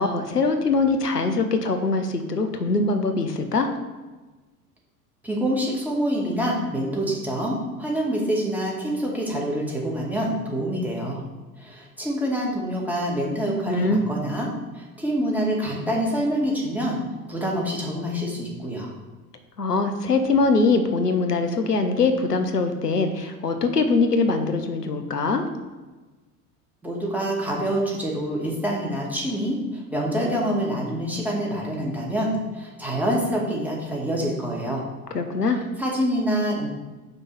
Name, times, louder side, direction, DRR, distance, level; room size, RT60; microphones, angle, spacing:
voice 1, 0.0-3.7 13.7-14.0 19.6-25.4 35.1-35.6, left 3 dB, 90° left, 6 dB, 0.8 m, -22 dB
voice 2, 5.2-11.2 11.6-14.5 14.7-17.0 17.3-18.9 26.8-32.3 32.5-34.8 35.8-36.7, equal, 5° right, -3 dB, 1.9 m, -26 dB
5.4 x 4.4 x 6.2 m, 1.2 s
figure-of-eight pair, 75°, 46 cm